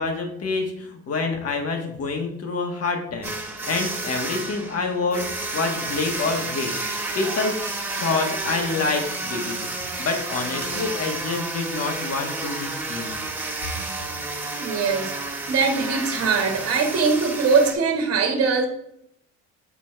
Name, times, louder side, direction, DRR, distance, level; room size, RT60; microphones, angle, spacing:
voice 1, 0.0-3.3 3.6-6.7 7.1-7.5 8.0-9.6 10.0-13.1, left 4 dB, 55° left, 3 dB, 1.7 m, -27 dB
sound 1, 3.2-17.7, right 2 dB, 10° right, 1.7 m, -31 dB
voice 2, 14.6-15.1 15.5-18.7, right 4 dB, 50° right, 4 dB, 1.4 m, -21 dB
7.3 x 4.2 x 4.5 m, 0.75 s
cardioid pair, 85°, 30 cm